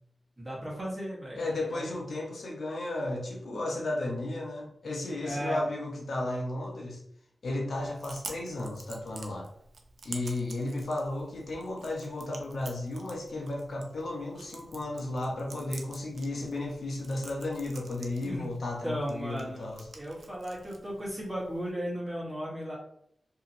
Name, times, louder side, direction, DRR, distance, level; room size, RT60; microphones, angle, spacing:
voice 1, 0.4-1.8 5.2-5.7 18.2-18.5 18.8-19.7 19.9-22.8, equal, 20° right, -6 dB, 1.1 m, -35 dB
voice 2, 1.3-7.0 7.4-9.5 10.0-19.9, left 2 dB, 75° left, 0 dB, 0.6 m, -34 dB
Chewing mastication, 7.7-21.7, right 3 dB, 80° right, 0.4 m, -49 dB
2.7 x 2.7 x 2.6 m, 0.71 s
wide cardioid pair, 110°, 0 cm